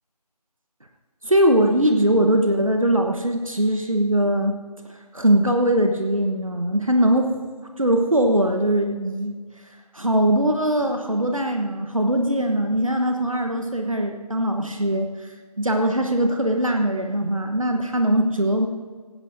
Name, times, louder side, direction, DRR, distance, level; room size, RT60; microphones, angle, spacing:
voice 1, 1.2-4.5 5.1-7.4 7.8-9.3 9.9-15.3 15.6-18.7, right 1 dB, 55° right, 4 dB, 1.1 m, -21 dB
18.0 x 16.5 x 2.7 m, 1.5 s
figure-of-eight pair, 175°, 21 cm